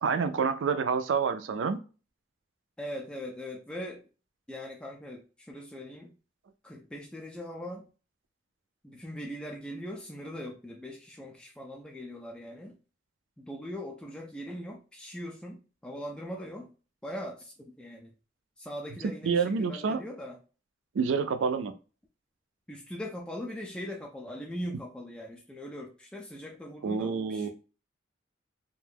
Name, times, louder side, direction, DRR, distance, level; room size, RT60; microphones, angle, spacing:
voice 1, 0.0-1.8 19.2-20.0 20.9-21.7 26.8-27.5, right 5 dB, 80° right, 10 dB, 0.4 m, -28 dB
voice 2, 2.8-4.0 4.5-6.1 6.6-7.9 8.8-12.8 13.4-16.7 17.0-18.1 18.6-20.4 22.7-27.5, equal, 5° left, 0 dB, 0.3 m, -40 dB
2.5 x 2.2 x 3.3 m, 0.35 s
head